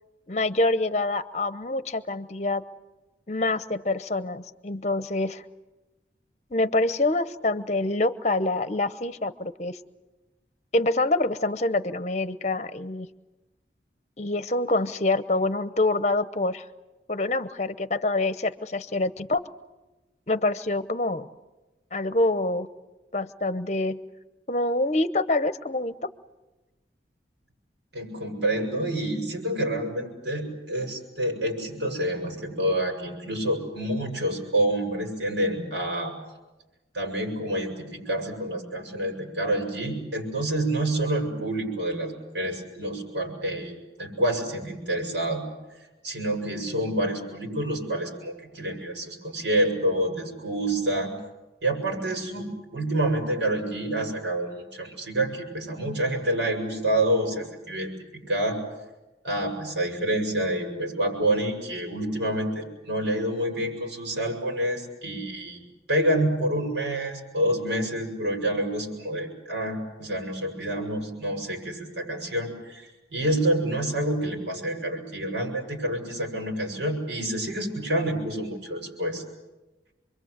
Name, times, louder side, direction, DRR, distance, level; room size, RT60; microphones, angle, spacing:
voice 1, 0.3-2.6 3.3-5.4 6.5-9.8 10.7-13.1 14.2-16.6 17.1-19.4 20.3-21.3 21.9-22.7 23.1-24.0 24.5-26.0, left 2 dB, 40° left, 13 dB, 0.8 m, -26 dB
voice 2, 27.9-36.1 36.9-45.4 46.0-51.1 51.6-52.5 52.7-57.9 58.3-58.6 59.2-65.6 65.9-79.2, right 1 dB, 85° right, 2 dB, 7.1 m, -28 dB
27.5 x 23.0 x 8.1 m, 1.1 s
head